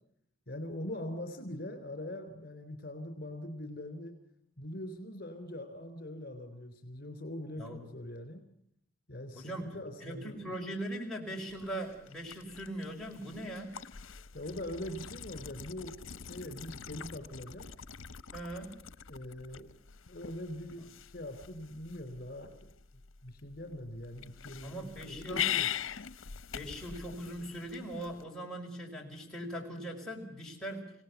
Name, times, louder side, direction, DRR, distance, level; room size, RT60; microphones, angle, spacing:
voice 1, 0.5-4.1 4.6-8.4 9.1-10.5 14.3-17.7 19.1-19.7 20.1-22.7 23.2-25.7, left 1 dB, 45° left, 8 dB, 3.5 m, -42 dB
voice 2, 9.3-13.8 18.3-18.8 24.6-25.6 26.5-30.9, right 1 dB, 5° left, -3 dB, 4.8 m, -40 dB
sound 1, 11.5-28.2, left 9 dB, 80° left, 0.8 m, -42 dB
26.0 x 18.0 x 8.2 m, 0.72 s
head